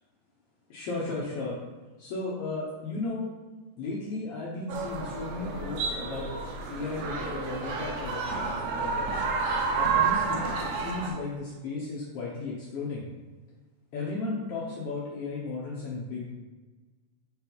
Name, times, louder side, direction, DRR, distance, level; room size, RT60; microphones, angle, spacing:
voice 1, 0.7-1.5 2.0-3.3 3.8-6.3 6.7-9.2 9.7-10.4 10.7-13.0 13.9-16.3, left 3 dB, 80° left, -5 dB, 1.3 m, -35 dB
sound 1, 4.7-11.1, right 4 dB, 75° right, 2.4 m, -30 dB
6.3 x 4.0 x 4.5 m, 1.2 s
omnidirectional pair, 4.1 m